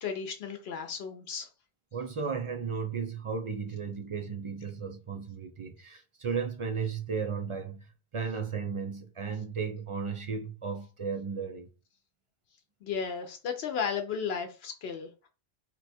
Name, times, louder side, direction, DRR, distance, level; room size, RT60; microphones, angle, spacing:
voice 1, 0.0-1.5 12.8-15.3, left 6 dB, 75° left, 0.8 m, -34 dB
voice 2, 1.9-11.7, right 5 dB, 55° right, 0.3 m, -35 dB
2.8 x 2.2 x 4.1 m
omnidirectional pair, 1.1 m